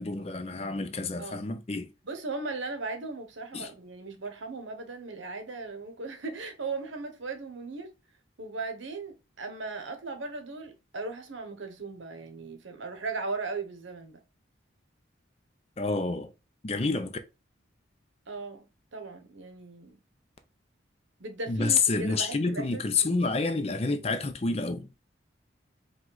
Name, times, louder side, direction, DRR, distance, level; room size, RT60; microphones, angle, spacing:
voice 1, 0.0-1.9 3.5-3.7 15.8-16.3 16.6-17.2 21.5-24.9, left 4 dB, 30° left, 0.5 m, -28 dB
voice 2, 2.0-7.9 8.4-14.2 18.3-18.7 18.9-20.0 21.2-23.3, right 3 dB, 75° right, 0.9 m, -37 dB
4.8 x 2.3 x 3.9 m
head